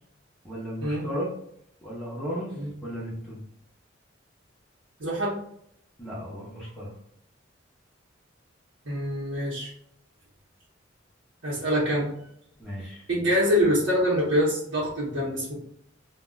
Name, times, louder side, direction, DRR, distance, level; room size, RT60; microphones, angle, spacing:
voice 1, 0.4-1.3 1.8-3.4 6.0-6.9 12.6-13.1, equal, 5° left, -8 dB, 0.7 m, -35 dB
voice 2, 5.0-5.4 8.8-9.7 11.4-12.2 13.1-15.5, equal, 75° right, -6 dB, 0.9 m, -25 dB
3.6 x 2.2 x 2.2 m, 0.71 s
head